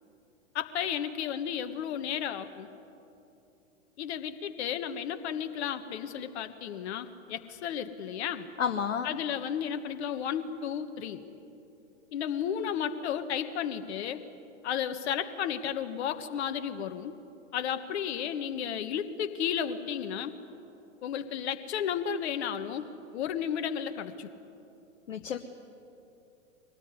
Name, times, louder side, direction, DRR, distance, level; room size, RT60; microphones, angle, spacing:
voice 1, 0.5-2.7 4.0-8.5 9.0-11.2 12.1-14.2 14.6-17.1 17.5-20.3 21.0-24.3, left 8 dB, 55° left, 8 dB, 1.5 m, -33 dB
voice 2, 8.6-9.1 25.1-25.4, left 7 dB, 75° left, 5 dB, 1.2 m, -30 dB
23.5 x 19.0 x 9.7 m, 2.9 s
figure-of-eight pair, 105°, 39 cm